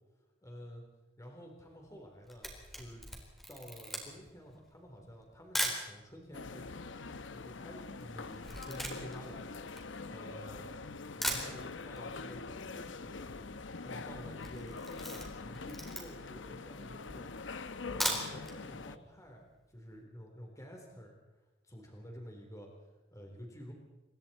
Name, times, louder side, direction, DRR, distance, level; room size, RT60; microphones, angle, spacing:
voice 1, 0.4-0.8 1.2-2.5 2.8-3.1 3.5-6.8 7.3-9.4 10.1-10.7 11.2-13.4 13.8-17.3 17.8-19.4 19.7-21.1 21.6-22.7 23.1-23.7, equal, 15° left, 1 dB, 4.0 m, -50 dB
Camera, 2.0-5.9 6.6-6.7 6.8-10.5 10.9-11.0 11.2-12.1 12.3-12.4 12.7-12.8 13.0-13.4 13.8-14.0 14.4-16.4 16.9-17.0 17.8-18.6 18.9-19.0 19.4-19.5, equal, ahead, 4.0 m, -38 dB
sound 1, 6.3-19.0, left 4 dB, 80° left, 0.9 m, -44 dB
27.0 x 23.5 x 4.5 m, 1.1 s
head